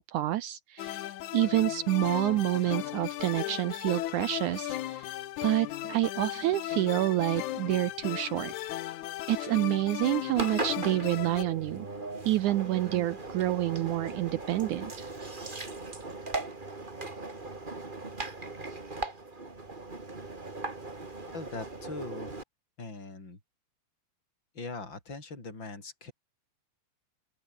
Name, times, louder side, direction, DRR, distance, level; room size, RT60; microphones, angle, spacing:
voice 1, 0.0-5.1 5.4-8.7 9.3-11.9 12.2-15.1, right 15 dB, 80° right, 1.7 m, -28 dB
sound 1, 0.8-11.4, left 14 dB, 70° left, 1.9 m, -36 dB
Engine, 10.3-22.4, right 3 dB, 15° right, 1.9 m, -39 dB
voice 2, 21.3-22.3 22.8-23.4 24.5-26.1, left 3 dB, 30° left, 7.9 m, -41 dB
open air
omnidirectional pair, 4.5 m